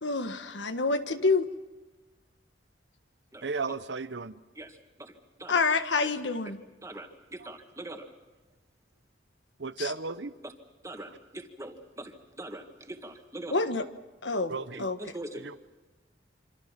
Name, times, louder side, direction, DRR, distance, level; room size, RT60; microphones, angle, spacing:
voice 1, 0.0-1.5 5.5-6.6 9.8-9.9 13.5-13.9 14.2-15.0, left 3 dB, 80° left, 9 dB, 1.5 m, -27 dB
voice 2, 3.4-4.3 9.6-10.3 14.5-14.8, right 4 dB, 70° right, 13 dB, 0.8 m, -34 dB
voice 3, 4.6-5.6 6.0-6.1 6.8-8.1 10.2-10.5 10.8-13.6 14.7-15.6, right 1 dB, 15° right, 5 dB, 2.1 m, -43 dB
27.0 x 25.5 x 6.0 m, 1.2 s
head